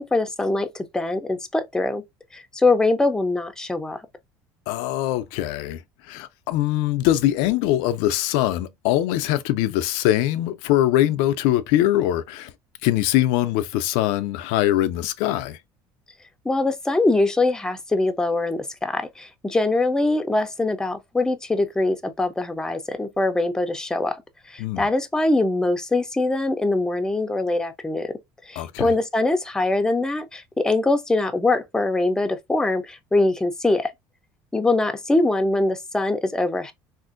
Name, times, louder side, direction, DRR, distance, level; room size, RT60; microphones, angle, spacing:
voice 1, 0.0-2.0 2.3-4.0 16.4-24.2 24.5-28.1 28.4-33.9 34.5-36.7, left 2 dB, 10° left, 0.5 m, -23 dB
voice 2, 4.7-5.8 6.1-12.5 12.8-15.6 24.6-24.8 28.6-28.9, left 14 dB, 85° left, 0.4 m, -22 dB
3.5 x 2.5 x 2.4 m
cardioid pair, 110°, 8 cm